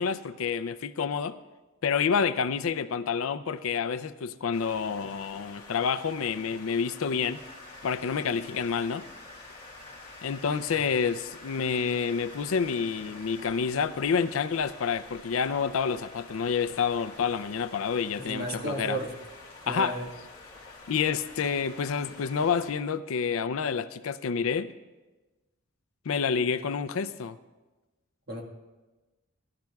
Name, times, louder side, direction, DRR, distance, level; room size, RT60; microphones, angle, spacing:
voice 1, 0.0-1.4 1.8-7.4 7.8-9.1 10.2-19.0 19.7-20.0 20.9-24.7 26.1-27.4, left 6 dB, 80° left, 0.5 m, -28 dB
sound 1, 4.5-22.7, left 3 dB, 20° left, 2.3 m, -49 dB
sound 2, 7.3-22.2, equal, 25° right, 2.6 m, -54 dB
voice 2, 18.2-19.1 19.7-20.1 28.3-28.4, right 1 dB, 50° right, 1.6 m, -33 dB
18.5 x 11.5 x 2.3 m
head